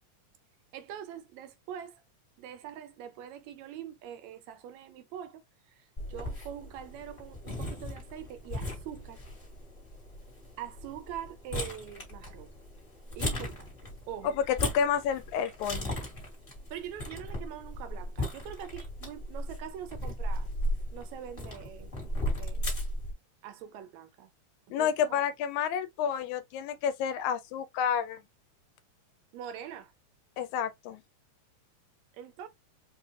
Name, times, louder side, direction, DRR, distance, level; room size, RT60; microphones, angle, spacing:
voice 1, 0.7-2.0 2.4-9.2 10.6-12.5 13.2-14.4 16.7-20.5 20.9-21.9 22.4-22.7 23.4-24.3 24.8-25.2 29.3-29.9 32.1-32.5, right 9 dB, 80° right, 1.8 m, -43 dB
sound 1, 6.0-23.1, left 1 dB, 30° left, 1.1 m, -37 dB
voice 2, 14.2-15.9 24.7-28.2 30.4-31.0, left 8 dB, 85° left, 1.9 m, -30 dB
4.5 x 2.3 x 3.2 m
omnidirectional pair, 3.4 m